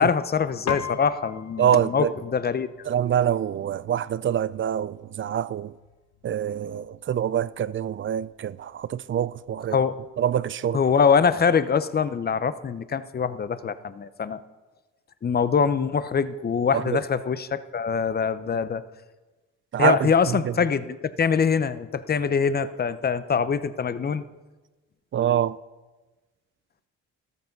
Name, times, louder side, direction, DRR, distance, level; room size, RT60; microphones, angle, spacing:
voice 1, 0.0-2.7 9.7-9.9 10.7-14.4 15.2-18.8 19.8-24.2, left 6 dB, 30° left, 0.7 m, -23 dB
Piano, 0.7-10.3, left 8 dB, 60° left, 1.0 m, -41 dB
voice 2, 1.6-2.1 2.9-5.7 6.2-9.8 10.2-10.8 16.7-17.0 19.7-20.5 25.1-25.6, right 9 dB, 40° right, 0.5 m, -25 dB
13.5 x 13.0 x 5.3 m
cardioid pair, 90°, 30 cm